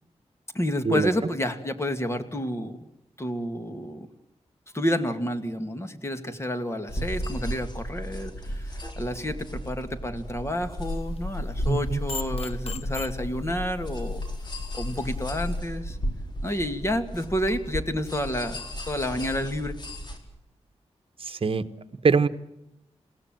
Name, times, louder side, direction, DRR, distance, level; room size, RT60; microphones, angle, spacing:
voice 1, 0.5-2.8 3.2-4.1 4.7-14.2 14.7-16.0 16.4-19.7, left 1 dB, 25° left, 8 dB, 2.4 m, -30 dB
sound 1, 6.9-20.2, equal, 40° left, 4.4 m, -35 dB
sound 2, 10.8-15.6, left 2 dB, 60° left, 1.3 m, -34 dB
voice 2, 11.7-12.0 21.2-21.6 22.0-22.3, right 5 dB, 50° right, 12 dB, 1.2 m, -23 dB
29.5 x 17.5 x 9.2 m, 0.88 s
wide cardioid pair, 145°, 12 cm